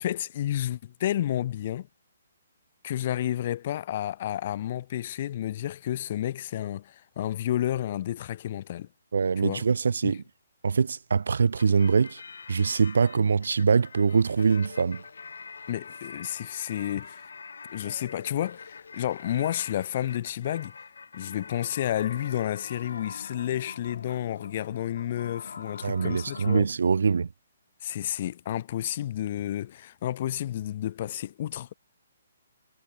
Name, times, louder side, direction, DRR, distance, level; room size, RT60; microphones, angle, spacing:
voice 1, 0.0-1.9 2.8-8.9 9.4-9.6 10.0-10.1 15.7-17.3 17.7-20.7 21.1-26.7 27.8-31.7, left 12 dB, 45° left, 1.0 m, -31 dB
voice 2, 9.1-10.2 10.6-12.2 12.5-15.0 25.8-27.3, right 5 dB, 80° right, 0.8 m, -23 dB
sound 1, 11.5-26.6, left 5 dB, 80° left, 3.7 m, -44 dB
hypercardioid pair, 155°, 0 cm